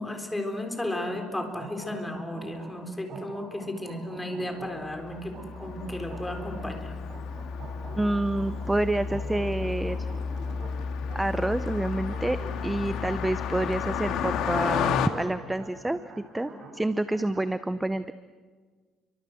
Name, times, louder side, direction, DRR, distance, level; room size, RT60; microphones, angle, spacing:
voice 1, 0.0-6.9, left 1 dB, 10° left, 4 dB, 4.0 m, -34 dB
sound 1, 0.7-17.5, right 3 dB, 45° right, 7.3 m, -46 dB
Car passing by, 4.9-15.1, left 7 dB, 75° left, 2.3 m, -32 dB
voice 2, 7.9-10.0 11.1-12.4 12.6-18.1, right 1 dB, 10° right, 12 dB, 0.7 m, -28 dB
30.0 x 24.5 x 7.8 m, 1.5 s
cardioid pair, 145°, 0 cm